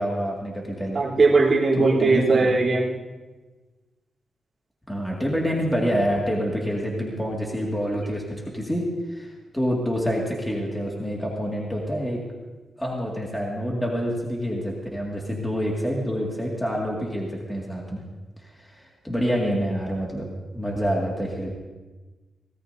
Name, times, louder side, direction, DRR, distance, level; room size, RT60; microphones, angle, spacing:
voice 1, 0.0-1.0 1.7-2.5 4.9-12.2 12.8-18.0 18.6-20.3 20.5-21.5, equal, 5° left, -3 dB, 2.1 m, -27 dB
voice 2, 0.9-2.9, right 3 dB, 35° right, -5 dB, 3.3 m, -19 dB
24.5 x 17.5 x 2.7 m, 1.2 s
wide cardioid pair, 165°, 0 cm